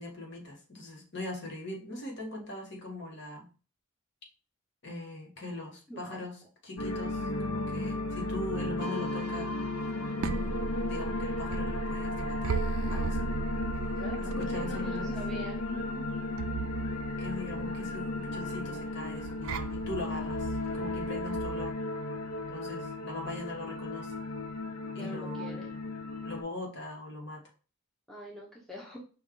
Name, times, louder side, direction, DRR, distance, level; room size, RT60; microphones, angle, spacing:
voice 1, 0.0-3.5 4.8-9.5 10.2-10.5 10.8-12.6 12.9-13.3 14.2-15.2 17.2-21.7 22.5-24.2 24.9-25.6 26.2-27.4, left 2 dB, 55° left, 0 dB, 1.3 m, -41 dB
voice 2, 5.9-6.2 13.9-16.0 25.0-25.7 28.1-29.0, equal, ahead, -3 dB, 0.6 m, -44 dB
sound 1, 6.8-26.4, left 2 dB, 85° left, 0.6 m, -35 dB
sound 2, 9.8-21.7, right 5 dB, 75° right, 0.4 m, -37 dB
5.1 x 2.3 x 3.7 m, 0.37 s
head